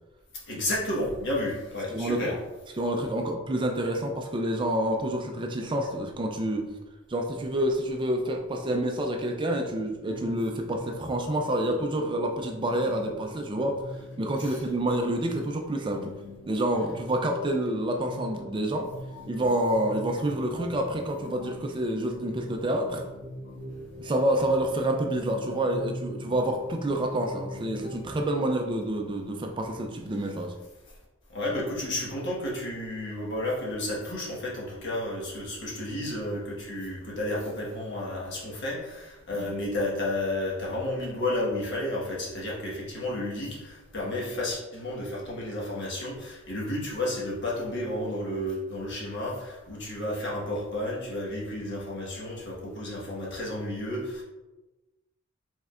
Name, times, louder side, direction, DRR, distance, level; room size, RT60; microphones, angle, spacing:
voice 1, 0.5-2.3 14.4-14.6 31.3-54.2, left 1 dB, 55° left, -4 dB, 1.3 m, -32 dB
voice 2, 1.9-2.4 2.8-6.7 7.1-16.1 16.5-18.9 19.3-23.0 24.0-30.5 39.3-39.5, right 1 dB, 25° right, 3 dB, 0.4 m, -28 dB
sound 1, 10.1-28.2, left 1 dB, 85° left, 1.3 m, -42 dB
5.3 x 3.6 x 2.4 m, 1.1 s
head